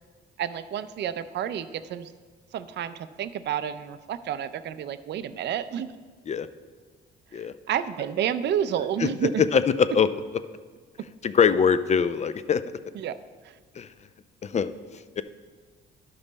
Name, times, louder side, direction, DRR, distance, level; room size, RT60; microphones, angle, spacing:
voice 1, 0.4-2.1 2.5-5.9 7.3-9.4 12.9-13.2 13.4-13.6, right 9 dB, 60° right, 12 dB, 0.5 m, -30 dB
voice 2, 9.5-10.1 11.2-12.6 13.8-13.9 14.4-14.7 15.2-15.3, left 6 dB, 35° left, 13 dB, 0.5 m, -22 dB
12.0 x 5.4 x 4.0 m, 1.5 s
cardioid pair, 90°, 20 cm